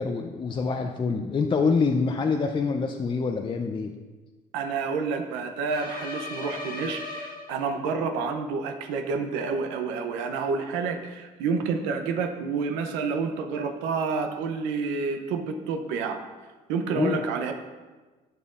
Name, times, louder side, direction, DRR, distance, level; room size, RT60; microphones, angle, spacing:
voice 1, 0.0-3.9 17.0-17.2, left 4 dB, 30° left, 5 dB, 0.5 m, -26 dB
voice 2, 4.5-16.2 16.7-17.5, right 4 dB, 85° right, 5 dB, 0.7 m, -29 dB
sound 1, 5.7-8.0, left 2 dB, 50° left, 1.3 m, -37 dB
11.0 x 5.4 x 2.5 m, 1.3 s
supercardioid pair, 70°, 18 cm